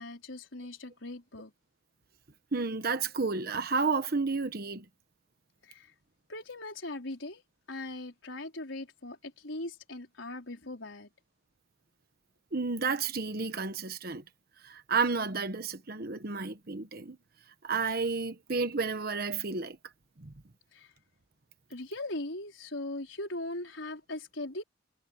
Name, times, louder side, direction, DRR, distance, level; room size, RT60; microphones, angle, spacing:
voice 1, 0.0-1.5 5.6-5.9 6.3-7.4 7.7-11.1 20.7-20.9 21.7-24.6, left 2 dB, 90° left, 4.6 m, -40 dB
voice 2, 2.5-4.8 12.5-14.2 14.6-17.2 17.6-19.8 20.2-20.3, right 4 dB, 55° right, 1.2 m, -31 dB
head